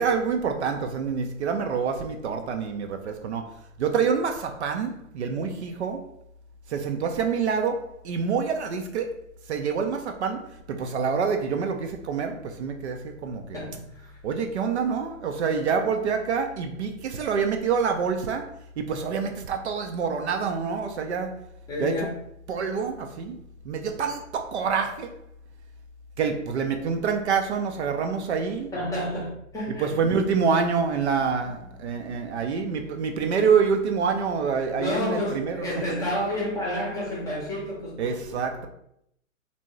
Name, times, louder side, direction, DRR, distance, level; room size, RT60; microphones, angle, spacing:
voice 1, 0.0-3.5 3.8-6.0 6.7-9.1 9.5-13.6 14.2-21.4 21.8-22.0 22.5-23.4 23.6-25.1 26.2-28.7 29.8-36.0 38.0-38.7, right 6 dB, 55° right, 5 dB, 0.5 m, -27 dB
voice 2, 13.5-14.2 21.7-22.1 28.7-30.0 34.8-38.5, left 1 dB, 10° left, -4 dB, 0.7 m, -30 dB
3.4 x 2.7 x 3.1 m, 0.74 s
hypercardioid pair, 125°, 40 cm